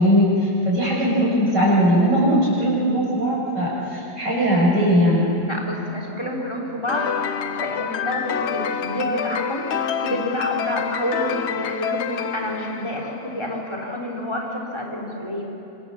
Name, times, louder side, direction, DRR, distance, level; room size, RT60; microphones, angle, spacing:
voice 1, 0.0-5.3, equal, 90° right, -4 dB, 7.0 m, -19 dB
voice 2, 5.4-15.4, equal, 15° left, 0 dB, 3.7 m, -29 dB
sound 1, 6.9-13.5, left 7 dB, 55° left, 0.8 m, -27 dB
26.0 x 26.0 x 7.2 m, 2.9 s
omnidirectional pair, 1.8 m